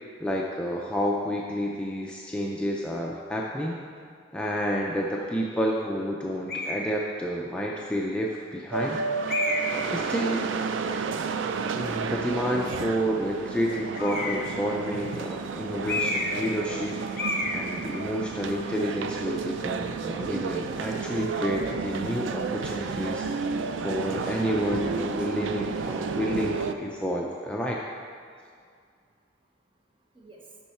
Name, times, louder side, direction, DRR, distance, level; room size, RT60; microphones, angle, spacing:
voice 1, 0.2-3.8 4.3-9.0 9.5-9.6 9.9-10.5 11.7-17.0 17.5-27.8, equal, 5° left, -2 dB, 0.3 m, -30 dB
sound 1, 6.5-6.9 7.7-7.8 9.3-9.8 14.0-14.5 15.9-16.5 16.7-16.9 17.2-17.6, left 2 dB, 55° left, 0.8 m, -29 dB
sound 2, 8.7-26.7, right 5 dB, 75° right, 0.4 m, -31 dB
voice 2, 28.2-30.7, right 2 dB, 30° right, -1 dB, 0.9 m, -57 dB
7.3 x 5.5 x 4.3 m, 2.2 s
head